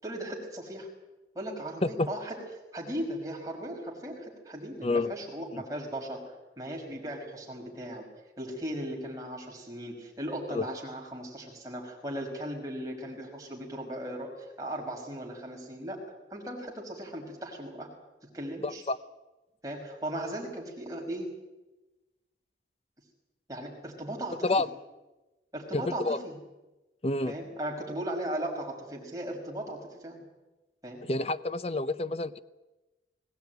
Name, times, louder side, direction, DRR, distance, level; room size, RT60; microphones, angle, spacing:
voice 1, 0.0-0.9 1.3-2.4 2.7-6.2 6.6-8.0 8.4-16.0 16.3-17.9 18.3-18.8 19.6-21.3 23.5-24.5 25.5-26.4 27.3-30.2 30.8-31.0, right 1 dB, 20° right, -1 dB, 5.8 m, -37 dB
voice 2, 18.6-19.0 24.4-24.7 25.7-26.2 27.0-27.3 31.1-32.4, left 2 dB, 35° left, 13 dB, 0.8 m, -28 dB
21.5 x 18.0 x 9.4 m, 1.1 s
head